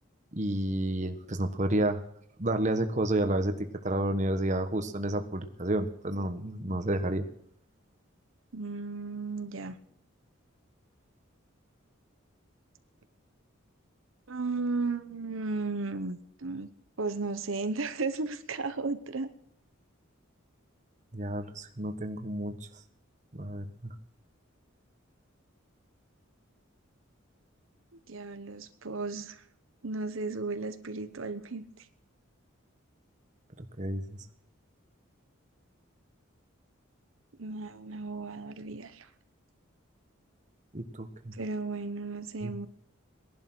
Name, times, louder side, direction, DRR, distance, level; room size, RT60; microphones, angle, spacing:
voice 1, 0.3-2.0 2.4-7.2 21.1-22.5 23.3-23.9 33.6-34.2 40.7-41.3 42.4-42.7, right 1 dB, 35° right, 7 dB, 1.3 m, -30 dB
voice 2, 8.5-9.8 14.3-16.7 17.0-19.3 27.9-29.4 29.8-31.9 37.4-39.1 41.3-42.7, right 3 dB, 80° right, 10 dB, 1.0 m, -34 dB
19.0 x 11.0 x 6.2 m, 0.68 s
head